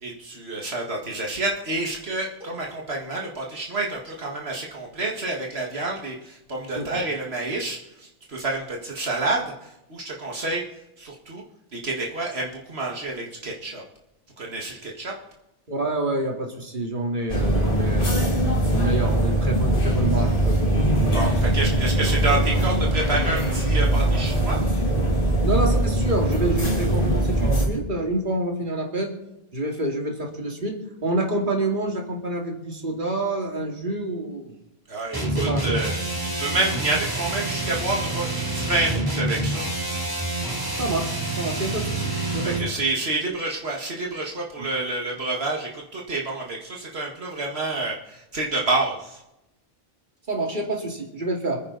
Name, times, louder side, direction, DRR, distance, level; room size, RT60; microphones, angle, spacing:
voice 1, 0.0-10.6 11.0-11.4 11.7-13.8 14.4-15.1 21.1-24.6 34.9-36.0 36.4-39.6 42.6-49.2, right 2 dB, 80° right, -1 dB, 2.1 m, -28 dB
voice 2, 15.7-21.5 25.4-29.1 29.5-34.5 35.2-35.8 40.7-42.7 44.6-44.7 50.3-51.6, right 1 dB, 50° right, 0 dB, 2.7 m, -28 dB
sound 1, 17.3-27.7, right 1 dB, 55° left, 3.2 m, -21 dB
sound 2, 35.1-42.7, right 2 dB, 20° right, 2.8 m, -27 dB
26.5 x 9.8 x 4.0 m, 0.90 s
omnidirectional pair, 1.1 m